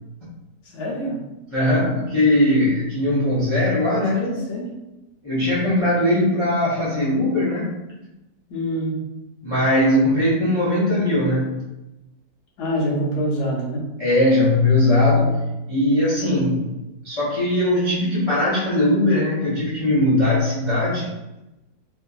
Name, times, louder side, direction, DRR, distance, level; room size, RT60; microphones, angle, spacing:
voice 1, 0.7-1.2 4.1-4.7 8.5-9.0 12.6-13.9, equal, 70° left, -4 dB, 1.4 m, -25 dB
voice 2, 1.5-4.3 5.2-7.8 9.4-11.6 14.0-16.7 17.0-21.1, left 1 dB, 45° left, -10 dB, 0.4 m, -20 dB
3.4 x 2.6 x 2.3 m, 0.99 s
omnidirectional pair, 1.8 m